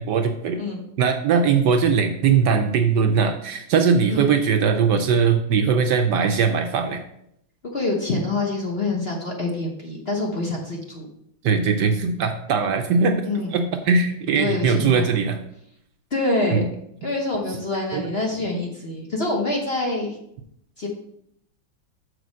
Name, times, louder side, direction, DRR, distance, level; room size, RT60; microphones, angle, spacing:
voice 1, 0.0-0.6 1.0-7.0 11.4-13.2 13.5-15.4 16.5-16.6 17.9-18.1, right 5 dB, 70° right, 6 dB, 1.1 m, -20 dB
voice 2, 7.7-11.1 13.3-13.5 14.3-15.1 16.1-16.6 17.0-20.2 20.8-20.9, left 2 dB, 40° left, -1 dB, 1.0 m, -26 dB
6.4 x 4.9 x 6.2 m, 0.75 s
omnidirectional pair, 2.2 m